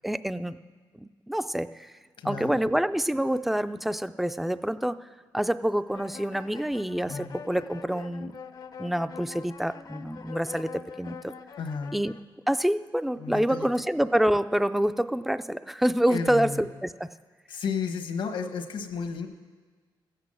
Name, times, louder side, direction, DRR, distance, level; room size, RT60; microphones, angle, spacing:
voice 1, 0.0-0.6 0.9-1.9 2.2-5.0 5.3-8.4 8.8-11.3 11.9-12.1 12.5-17.1, right 1 dB, ahead, 13 dB, 0.3 m, -27 dB
voice 2, 2.2-2.7 7.1-7.3 11.6-12.0 13.2-13.7 16.1-16.6 17.5-19.3, left 5 dB, 80° left, 6 dB, 1.3 m, -33 dB
sound 1, 5.9-12.2, left 6 dB, 50° left, 0.5 m, -44 dB
15.0 x 8.2 x 7.6 m, 1.5 s
wide cardioid pair, 135°, 8 cm